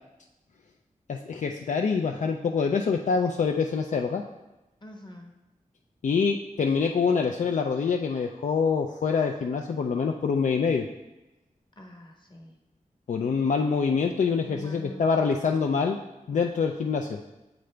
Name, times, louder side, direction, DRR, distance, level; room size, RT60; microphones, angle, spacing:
voice 1, 1.1-4.2 6.0-10.9 13.1-16.0 16.3-17.2, left 5 dB, 65° left, 2 dB, 0.4 m, -25 dB
voice 2, 4.8-5.3 11.8-12.6 14.4-15.3, equal, 35° left, 2 dB, 1.1 m, -45 dB
7.9 x 3.8 x 3.3 m, 1.0 s
wide cardioid pair, 60°, 14 cm